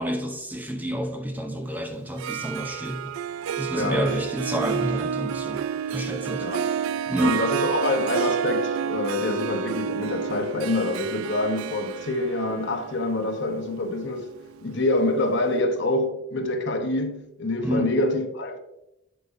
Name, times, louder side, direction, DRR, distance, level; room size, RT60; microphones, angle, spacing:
voice 1, 0.0-3.1 3.6-5.6 5.9-6.8 7.1-7.4 17.6-17.9, equal, 10° right, 0.6 m, -29 dB
Harp, 2.0-15.0, right 8 dB, 90° right, 0.3 m, -30 dB
voice 2, 3.8-4.1 6.4-6.6 7.2-14.3 14.6-18.6, left 2 dB, 60° left, 0.9 m, -26 dB
8.3 x 8.0 x 2.6 m
head